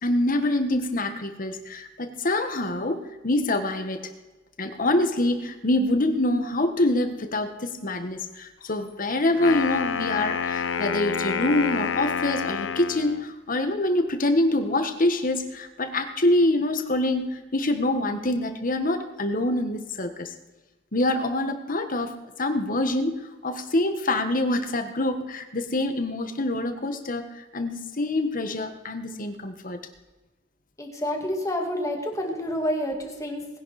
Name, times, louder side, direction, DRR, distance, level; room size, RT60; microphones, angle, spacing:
voice 1, 0.0-4.0 4.6-20.3 20.9-29.8, left 1 dB, 45° left, 7 dB, 1.4 m, -25 dB
Wind instrument woodwind instrument, 9.3-13.3, left 6 dB, 85° left, 0.7 m, -28 dB
voice 2, 30.8-33.6, equal, 15° left, 2 dB, 2.3 m, -29 dB
20.5 x 10.5 x 4.2 m, 1.1 s
head